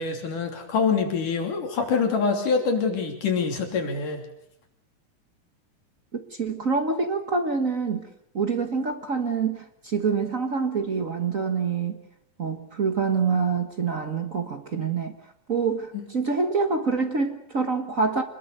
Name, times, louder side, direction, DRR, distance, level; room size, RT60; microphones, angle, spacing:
voice 1, 0.0-4.3 15.9-16.0, left 5 dB, 80° left, 3 dB, 4.6 m, -25 dB
voice 2, 6.1-8.1 8.3-12.0 12.4-15.1 15.5-18.2, right 5 dB, 50° right, 6 dB, 1.0 m, -26 dB
25.5 x 21.0 x 6.8 m, 0.73 s
omnidirectional pair, 3.6 m